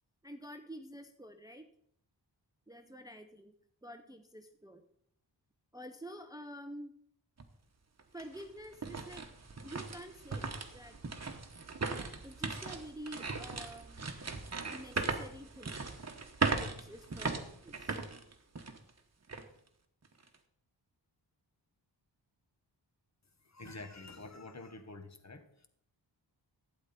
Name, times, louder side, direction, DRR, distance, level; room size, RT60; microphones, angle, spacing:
voice 1, 0.2-1.7 2.7-3.5 3.8-4.8 5.7-6.9 8.1-9.3 9.6-11.0 12.2-14.0 14.7-15.8 16.5-18.1, equal, 10° right, 6 dB, 0.6 m, -48 dB
sound 1, 7.4-7.5 8.0-18.9 19.3-19.4 20.0-20.4, right 4 dB, 35° right, 1.1 m, -38 dB
voice 2, 23.4-25.7, left 2 dB, 40° left, 8 dB, 1.2 m, -48 dB
12.0 x 8.7 x 4.1 m, 0.67 s
wide cardioid pair, 115°, 44 cm